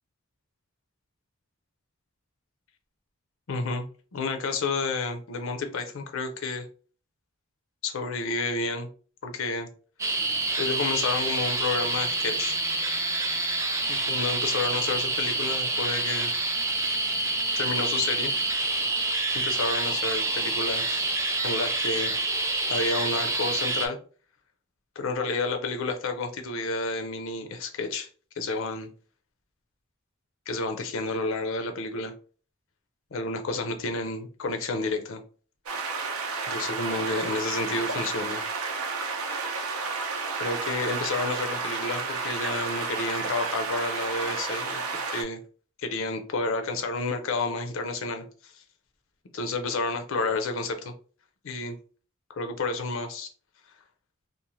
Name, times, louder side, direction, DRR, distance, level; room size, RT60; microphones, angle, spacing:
voice 1, 3.5-3.9 4.1-6.7 7.8-8.9 9.2-9.7 10.6-12.6 13.9-16.3 17.6-18.3 19.3-21.1 21.4-22.1 22.7-24.0 25.0-28.1 28.4-28.9 30.5-32.1 33.1-35.2 36.5-38.4 40.3-44.8 45.1-45.4 45.8-48.5 49.3-50.9 51.4-51.8 52.3-53.3, left 3 dB, 65° left, 6 dB, 0.5 m, -30 dB
sound 1, 10.0-23.9, right 2 dB, 15° right, 0.3 m, -27 dB
sound 2, 35.7-45.2, right 4 dB, 80° right, 0.5 m, -31 dB
2.6 x 2.1 x 3.0 m, 0.40 s
head